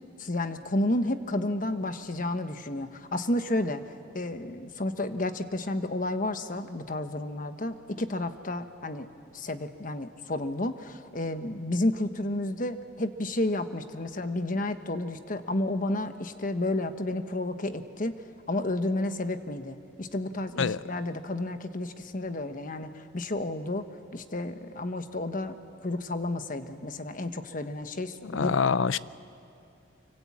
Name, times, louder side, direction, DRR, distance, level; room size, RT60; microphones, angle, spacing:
voice 1, 0.2-3.8 4.1-9.1 9.3-18.2 18.5-23.9 24.1-28.5, left 1 dB, 45° left, 9 dB, 1.2 m, -31 dB
voice 2, 28.2-29.0, left 6 dB, 90° left, 17 dB, 0.6 m, -25 dB
25.0 x 24.0 x 8.6 m, 2.8 s
head